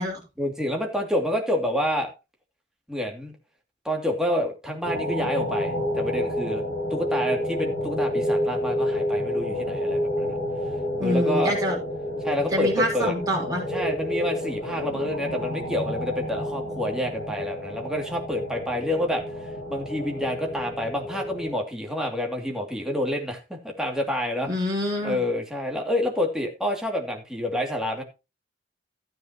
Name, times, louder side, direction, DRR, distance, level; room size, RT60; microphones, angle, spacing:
voice 1, 0.4-2.1 2.9-3.3 3.8-6.6 6.9-10.4 11.0-11.6 12.2-13.1 13.7-19.2 19.7-24.5 25.0-28.0, left 1 dB, 5° right, 1 dB, 2.6 m, -28 dB
sound 1, 4.8-21.5, left 1 dB, 70° left, 7.5 m, -29 dB
voice 2, 11.0-11.8 12.5-13.6 24.4-25.2, equal, 20° right, -2 dB, 6.4 m, -26 dB
14.0 x 9.4 x 3.0 m, 0.28 s
head